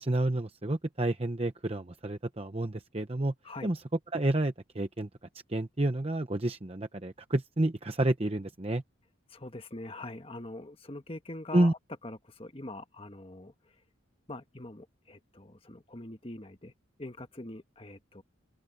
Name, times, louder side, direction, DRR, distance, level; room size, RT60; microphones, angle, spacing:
voice 1, 0.0-3.3 3.6-3.8 4.1-5.1 5.5-8.8 11.5-11.7, right 1 dB, 30° right, 0.9 m, -29 dB
voice 2, 9.3-11.8 12.0-13.7 14.3-16.7 17.0-18.2, left 2 dB, 25° left, 1.5 m, -43 dB
open air
head